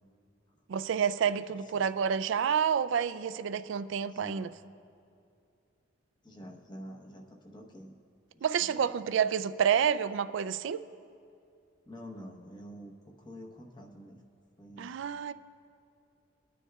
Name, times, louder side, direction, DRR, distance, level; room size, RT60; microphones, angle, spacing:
voice 1, 0.7-4.5 8.4-10.8 14.8-15.3, right 7 dB, 70° right, 0.3 m, -29 dB
voice 2, 4.1-4.5 6.2-7.9 8.3-8.4 11.9-14.2 14.6-14.9, equal, 20° left, 0.9 m, -47 dB
23.0 x 9.8 x 2.3 m
head